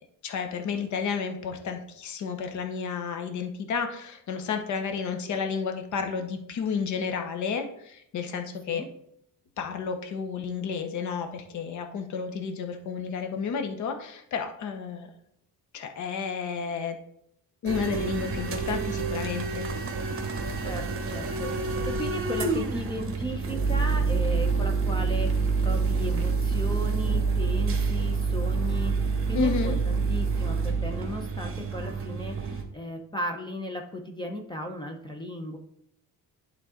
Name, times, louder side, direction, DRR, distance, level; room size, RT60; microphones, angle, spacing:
voice 1, 0.2-8.8 9.6-15.1 15.7-17.0 17.6-19.7 29.3-29.8, left 6 dB, 50° left, 6 dB, 0.9 m, -31 dB
sound 1, 17.7-32.6, right 4 dB, 35° right, 1.3 m, -27 dB
voice 2, 20.6-28.9 29.3-35.6, left 1 dB, 10° left, 3 dB, 0.7 m, -36 dB
11.0 x 3.8 x 3.7 m, 0.75 s
cardioid pair, 155°, 37 cm